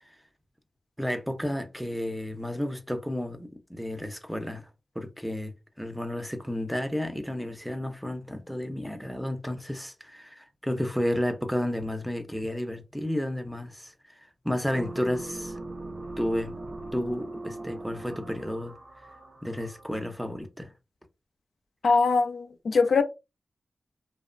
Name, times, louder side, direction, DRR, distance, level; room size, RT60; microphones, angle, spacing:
voice 1, 1.0-4.7 5.0-13.9 14.4-15.5 16.2-16.5 16.9-18.7 19.4-20.7, left 1 dB, ahead, 0.5 m, -32 dB
sound 1, 14.7-20.3, right 2 dB, 55° right, 0.5 m, -40 dB
voice 2, 21.8-23.0, left 4 dB, 80° left, 0.4 m, -22 dB
2.9 x 2.0 x 2.4 m
wide cardioid pair, 70°, 0 cm